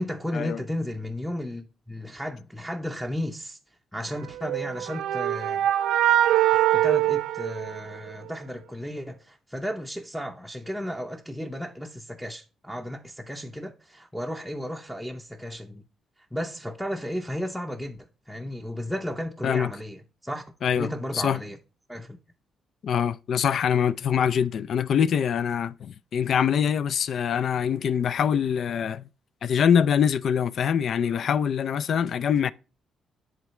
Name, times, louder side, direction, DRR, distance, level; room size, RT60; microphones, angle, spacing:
voice 1, 0.0-3.6 3.9-5.7 6.4-15.8 16.3-20.4 20.7-21.6 21.9-22.2, equal, ahead, 0.6 m, -34 dB
sound 1, 4.4-8.3, right 13 dB, 85° right, 0.4 m, -23 dB
voice 2, 20.6-21.4 22.8-29.0 29.4-32.5, left 8 dB, 60° left, 0.3 m, -24 dB
10.5 x 3.8 x 3.1 m
cardioid pair, 90°, 0 cm